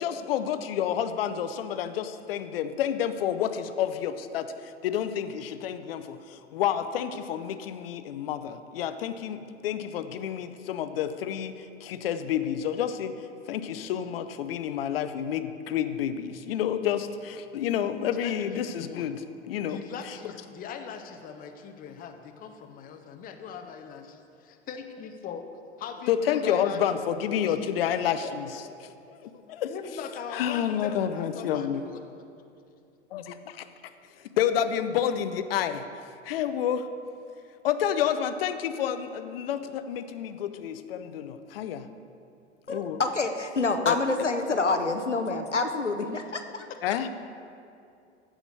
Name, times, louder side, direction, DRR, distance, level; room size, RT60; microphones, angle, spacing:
voice 1, 0.0-13.1 13.5-19.2 19.5-20.1 26.1-28.6 29.1-29.7 30.3-31.8 33.1-33.7 34.4-35.8 36.2-36.9 37.6-41.9 42.7-43.0 43.8-44.0 46.8-47.1, left 9 dB, 55° left, 11 dB, 0.7 m, -29 dB
voice 2, 18.0-19.1 19.7-25.5 25.8-26.8 27.1-27.8 28.2-28.8 29.3-29.4 29.7-32.0, left 6 dB, 25° left, 5 dB, 0.9 m, -40 dB
voice 3, 42.7-46.7, left 3 dB, 90° left, 6 dB, 0.8 m, -27 dB
15.0 x 5.0 x 6.5 m, 2.5 s
figure-of-eight pair, 90°, 35 cm